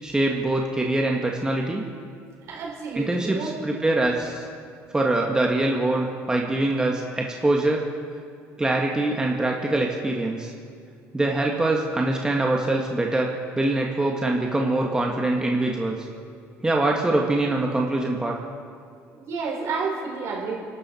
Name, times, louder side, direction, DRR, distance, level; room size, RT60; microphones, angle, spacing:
voice 1, 0.0-1.8 2.9-4.5 4.9-7.8 8.6-10.5 11.1-13.3 13.5-16.0 16.6-18.3, right 2 dB, 15° right, 0 dB, 1.7 m, -23 dB
voice 2, 2.5-3.5 19.2-20.6, right 4 dB, 60° right, -2 dB, 5.5 m, -30 dB
25.0 x 12.5 x 4.4 m, 2.2 s
supercardioid pair, 90°, 6 cm